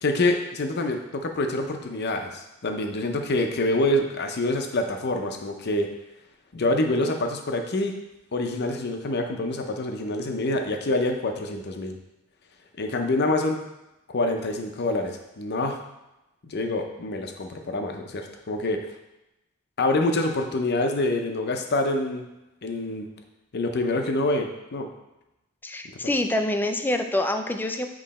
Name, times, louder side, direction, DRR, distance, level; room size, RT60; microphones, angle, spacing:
voice 1, 0.0-5.9 6.5-7.9 8.3-12.0 12.8-13.6 14.1-15.8 16.4-18.8 19.8-22.2 22.6-23.1 23.5-24.9, left 2 dB, 50° left, 4 dB, 0.7 m, -26 dB
voice 2, 25.6-27.9, left 1 dB, 10° left, 6 dB, 0.3 m, -26 dB
7.6 x 3.1 x 4.2 m, 0.94 s
head